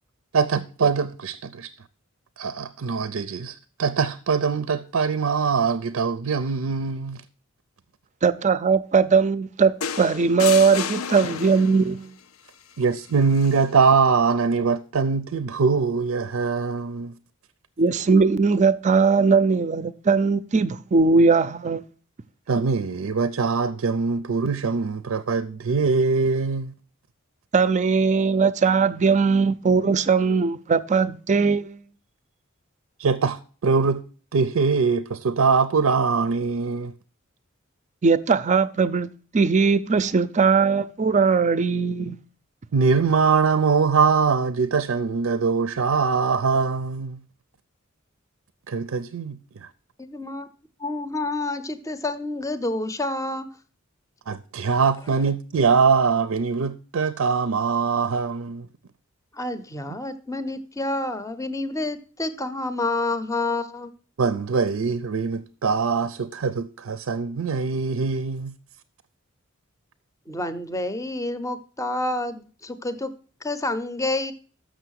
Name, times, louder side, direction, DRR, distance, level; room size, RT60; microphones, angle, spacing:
voice 1, 0.3-1.7 2.4-7.2 12.8-17.2 22.5-26.7 33.0-34.0 34.3-36.9 42.7-47.2 48.7-49.7 54.3-58.7 64.2-68.5, right 5 dB, 85° right, 0.5 m, -22 dB
voice 2, 8.2-12.1 17.8-21.8 27.5-31.8 38.0-39.1 39.3-42.2, right 5 dB, 35° right, 0.4 m, -20 dB
sound 1, 9.8-11.9 13.3-13.6, left 7 dB, 90° left, 0.5 m, -31 dB
voice 3, 50.0-50.5 50.8-53.5 59.3-63.9 70.3-73.1 73.4-74.3, left 2 dB, 15° left, 0.6 m, -28 dB
6.8 x 6.3 x 6.3 m
head